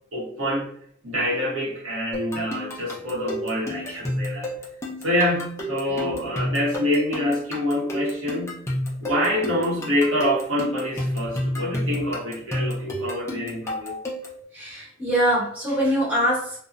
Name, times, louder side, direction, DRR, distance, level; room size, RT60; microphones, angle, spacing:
voice 1, 0.1-0.7 1.0-4.5 5.0-8.6 9.0-14.0, left 1 dB, 90° right, -4 dB, 0.9 m, -26 dB
sound 1, 2.1-14.4, equal, 15° left, 0.5 m, -31 dB
voice 2, 5.8-6.2 14.5-16.6, equal, 10° right, -7 dB, 1.0 m, -24 dB
2.7 x 2.0 x 2.4 m, 0.62 s
head